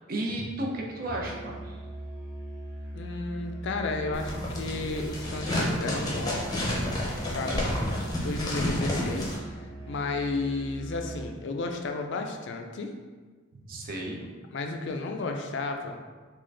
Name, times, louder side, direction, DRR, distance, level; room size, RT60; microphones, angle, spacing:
voice 1, 0.1-1.8 7.8-8.0 13.6-14.2, right 1 dB, 50° right, -1 dB, 0.6 m, -33 dB
Musical instrument, 1.0-11.4, right 1 dB, 10° right, 0.8 m, -41 dB
voice 2, 2.9-6.4 7.3-7.6 8.2-9.3 9.9-12.9 14.2-16.0, left 3 dB, 60° left, 4 dB, 0.4 m, -32 dB
sound 1, 4.1-9.4, left 1 dB, 20° left, 0.7 m, -30 dB
3.7 x 2.5 x 3.2 m, 1.4 s
head